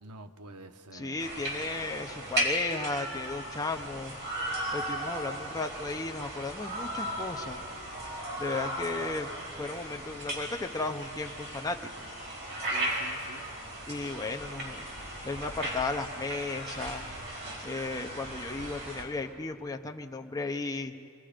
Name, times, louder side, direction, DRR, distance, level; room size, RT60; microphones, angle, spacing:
voice 1, 0.0-1.2 12.6-13.4, right 2 dB, 80° right, 7 dB, 0.9 m, -48 dB
voice 2, 0.9-4.1 4.7-7.6 8.4-9.3 9.6-12.1 13.9-14.9 15.2-17.1 17.6-20.9, left 3 dB, 15° left, 4 dB, 0.7 m, -35 dB
sound 1, 1.2-19.0, right 1 dB, 55° right, 4.5 m, -36 dB
26.5 x 19.0 x 5.1 m, 2.3 s
head